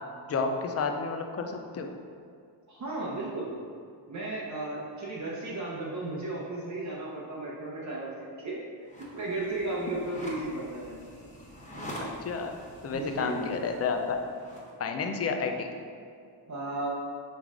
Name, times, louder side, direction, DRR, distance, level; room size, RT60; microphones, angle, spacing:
voice 1, 0.3-1.9 12.0-12.5 12.8-14.2 14.8-15.7, left 5 dB, 35° left, 4 dB, 0.5 m, -31 dB
voice 2, 2.7-3.5 4.1-8.6 9.0-11.1 12.9-13.5 16.5-16.9, right 2 dB, 40° right, -5 dB, 0.8 m, -35 dB
sound 1, 8.8-14.7, equal, 15° left, 0.9 m, -45 dB
5.4 x 4.7 x 3.7 m, 2.3 s
cardioid pair, 150°, 45 cm